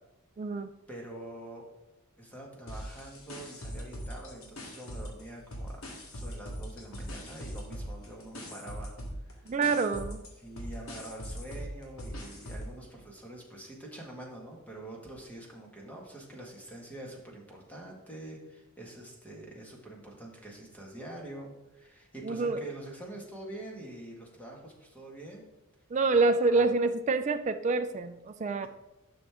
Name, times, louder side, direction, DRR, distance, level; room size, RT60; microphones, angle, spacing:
voice 1, 0.4-0.7 9.5-10.2 22.2-22.6 25.9-28.7, right 3 dB, 35° right, 7 dB, 0.4 m, -27 dB
voice 2, 0.9-1.7 2.2-5.8 6.1-8.9 9.2-9.4 10.4-25.4 26.4-26.7, right 1 dB, 5° left, -1 dB, 1.8 m, -45 dB
sound 1, 2.7-5.2 5.5-12.8, equal, 70° left, 2.0 m, -41 dB
11.0 x 6.2 x 3.6 m, 1.0 s
head